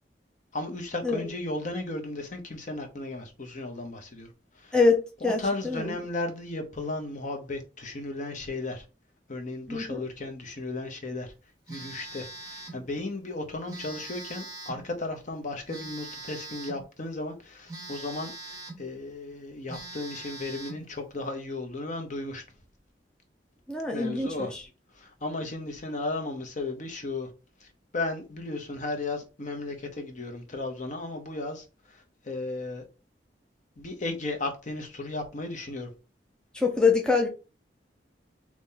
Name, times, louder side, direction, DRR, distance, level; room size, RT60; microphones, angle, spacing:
voice 1, 0.5-4.3 4.6-4.8 5.2-8.8 9.3-11.3 11.7-22.4 23.9-24.5 24.9-27.3 27.6-32.8 33.8-35.9, left 2 dB, 45° left, 1.0 m, -35 dB
voice 2, 4.7-6.0 9.7-10.0 23.7-24.6 36.5-37.3, left 4 dB, 5° left, 0.6 m, -25 dB
Telephone, 11.7-12.9 13.7-14.9 15.7-16.9 17.7-18.9 19.3-19.4 19.7-20.9, right 2 dB, 20° right, 1.5 m, -42 dB
4.2 x 3.0 x 3.7 m
head